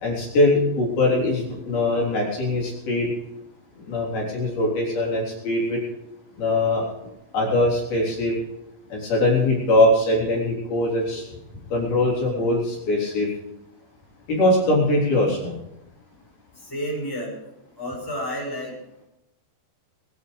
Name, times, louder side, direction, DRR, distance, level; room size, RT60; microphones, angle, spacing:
voice 1, 0.0-3.1 3.9-5.8 6.4-6.8 7.3-8.3 8.9-11.3 11.7-13.3 14.3-15.6, left 1 dB, 60° left, -4 dB, 5.4 m, -22 dB
voice 2, 16.6-17.3 17.8-18.7, equal, 5° left, -3 dB, 5.3 m, -30 dB
21.5 x 10.5 x 5.1 m, 0.85 s
omnidirectional pair, 4.8 m